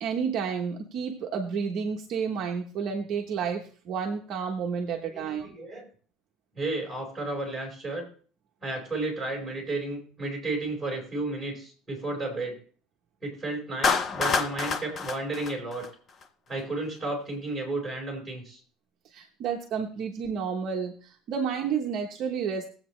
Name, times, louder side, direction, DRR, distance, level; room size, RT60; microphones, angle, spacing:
voice 1, 0.0-5.5 19.0-22.7, right 6 dB, 40° right, 2 dB, 1.0 m, -31 dB
voice 2, 5.1-5.9 6.5-8.1 8.6-12.6 13.2-15.9 16.5-18.6, right 2 dB, 5° right, -1 dB, 4.3 m, -33 dB
Clapping, 13.8-16.2, left 5 dB, 25° left, 0.7 m, -27 dB
19.5 x 8.0 x 3.1 m, 0.43 s
cardioid pair, 175°, 0 cm